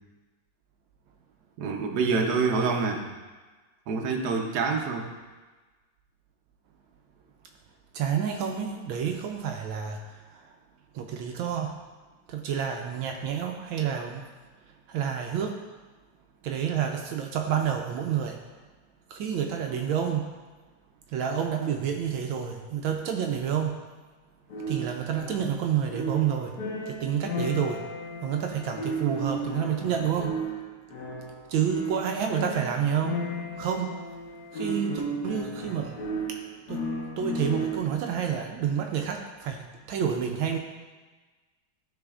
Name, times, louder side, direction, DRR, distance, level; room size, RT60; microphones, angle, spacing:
voice 1, 1.6-3.0 3.9-5.1, right 4 dB, 60° right, 1 dB, 1.2 m, -26 dB
voice 2, 7.9-10.0 10.9-11.7 12.3-14.2 14.9-15.6 16.4-18.4 19.1-20.2 21.1-23.7 24.7-26.5 26.9-27.8 28.2-30.4 31.5-33.2 33.6-33.9 34.5-35.9 36.7-36.8 37.2-39.6 39.9-40.6, right 8 dB, 80° right, 3 dB, 1.4 m, -29 dB
sound 1, 24.5-38.1, right 1 dB, 55° left, 1.5 m, -34 dB
12.5 x 4.3 x 2.4 m, 1.3 s
omnidirectional pair, 2.2 m